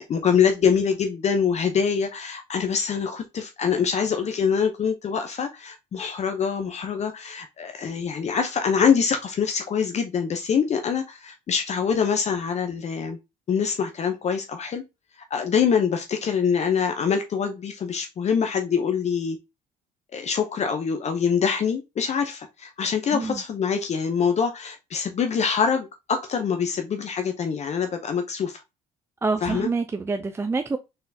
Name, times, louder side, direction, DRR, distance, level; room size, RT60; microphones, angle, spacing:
voice 1, 0.0-13.2 13.5-14.8 15.3-19.4 20.1-28.6 29.4-29.7, left 6 dB, 40° left, 0.7 m, -24 dB
voice 2, 23.1-23.4 29.2-30.8, right 3 dB, 15° right, 0.4 m, -26 dB
4.3 x 3.9 x 2.7 m
cardioid pair, 110°, 17 cm